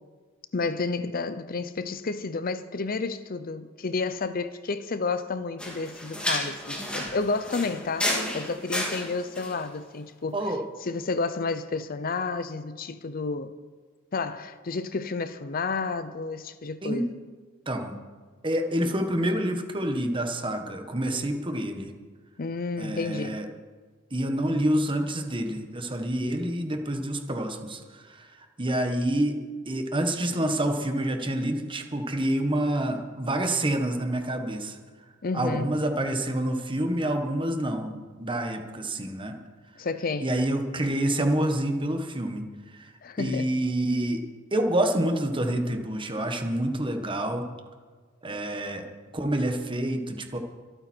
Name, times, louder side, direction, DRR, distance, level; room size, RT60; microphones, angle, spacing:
voice 1, 0.5-10.4 10.8-13.5 14.1-17.2 22.4-23.4 35.2-35.7 39.8-40.3 43.0-43.5, left 4 dB, 45° left, 0.6 m, -31 dB
sound 1, 5.6-9.6, left 1 dB, 5° left, 2.4 m, -31 dB
voice 2, 18.4-21.9 22.8-23.5 24.1-28.3 28.6-29.4 29.7-34.7 35.3-39.4 40.2-42.4 42.8-42.9 43.2-44.2 44.5-47.4 48.2-48.9 49.1-50.4, right 1 dB, 25° right, 1.4 m, -27 dB
24.5 x 9.0 x 4.5 m
head